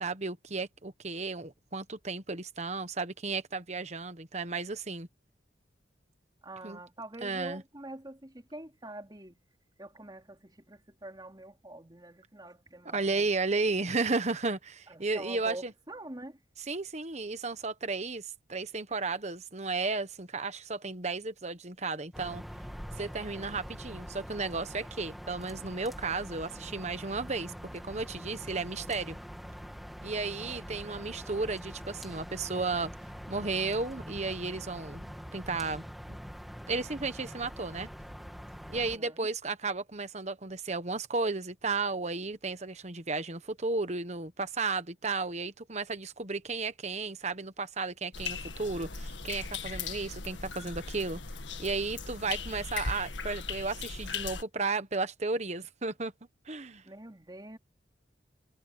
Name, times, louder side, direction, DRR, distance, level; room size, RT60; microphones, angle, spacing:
voice 1, 0.0-5.1 6.6-6.8 7.2-7.6 12.9-15.7 16.7-22.4 23.0-29.2 30.0-32.9 33.3-35.8 36.7-37.9 38.7-51.2 51.6-56.1 56.5-56.8, right 3 dB, 40° right, 1.3 m, -34 dB
voice 2, 6.4-9.4 9.8-13.6 14.9-16.4 30.3-30.6 30.9-31.1 38.7-39.3 56.8-57.6, right 1 dB, 25° right, 3.0 m, -46 dB
sound 1, 22.1-39.0, equal, ahead, 2.1 m, -44 dB
sound 2, 48.1-54.4, left 5 dB, 90° left, 1.8 m, -38 dB
head